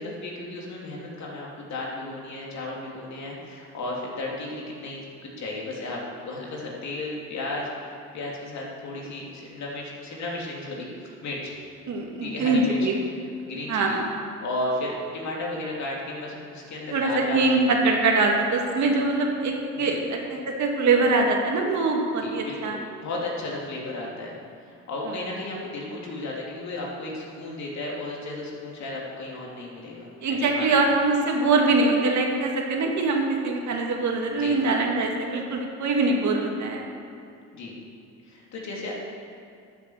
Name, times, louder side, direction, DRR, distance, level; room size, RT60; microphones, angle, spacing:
voice 1, 0.0-5.0 5.4-6.0 6.2-7.7 8.1-11.5 12.2-12.8 13.4-14.0 14.4-17.7 19.7-20.0 22.2-22.7 23.0-24.3 24.7-30.7 34.4-34.6 37.5-37.7 38.3-38.9, left 2 dB, 65° left, -3 dB, 3.3 m, -34 dB
voice 2, 11.9-12.9 13.7-14.1 16.9-20.0 20.3-22.8 30.2-36.8, right 3 dB, 70° right, 1 dB, 2.1 m, -23 dB
13.0 x 7.6 x 6.6 m, 2.5 s
cardioid pair, 90°, 30 cm